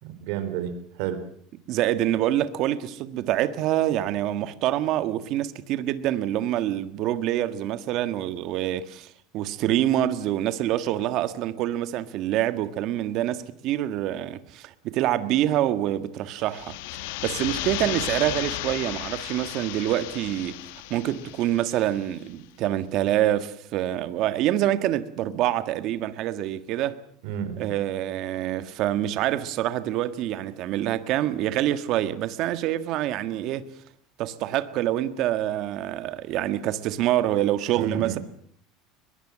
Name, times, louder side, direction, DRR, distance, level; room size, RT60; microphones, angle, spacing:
voice 1, 0.0-1.2 27.2-27.7 37.7-38.2, right 8 dB, 65° right, 4.0 m, -31 dB
voice 2, 1.7-20.6 20.9-27.0 27.6-33.7 34.2-38.2, right 13 dB, 50° right, 1.7 m, -26 dB
sound 1, 16.4-22.1, left 17 dB, 75° left, 1.3 m, -34 dB
23.0 x 21.5 x 7.5 m
cardioid pair, 155°, 0 cm